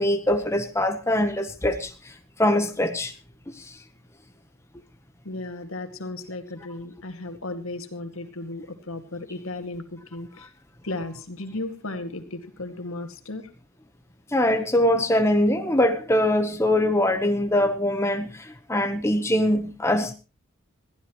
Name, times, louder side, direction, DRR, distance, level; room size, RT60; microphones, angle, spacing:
voice 1, 0.0-2.1 2.4-3.1 3.5-3.8 14.3-20.1, left 1 dB, 10° left, 1.0 m, -23 dB
voice 2, 5.2-10.5 10.8-13.5, left 2 dB, 70° left, 2.2 m, -35 dB
21.5 x 15.0 x 3.1 m
head